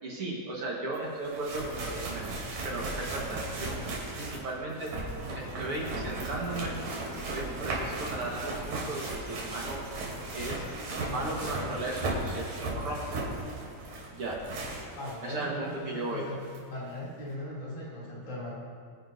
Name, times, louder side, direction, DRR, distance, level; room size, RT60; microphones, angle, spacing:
voice 1, 0.0-2.3 2.6-3.8 4.1-4.9 5.3-6.8 7.1-9.9 10.3-10.7 11.1-13.2 14.1-14.4 15.2-16.2, right 2 dB, 50° right, -3 dB, 2.2 m, -36 dB
sound 1, 0.9-1.0 1.2-15.3 15.7-15.8 16.5-16.6, right 2 dB, 90° right, 3.8 m, -36 dB
voice 2, 15.0-16.4 16.7-18.5, left 1 dB, 70° left, -7 dB, 4.6 m, -38 dB
22.5 x 10.0 x 2.7 m, 2.2 s
omnidirectional pair, 3.5 m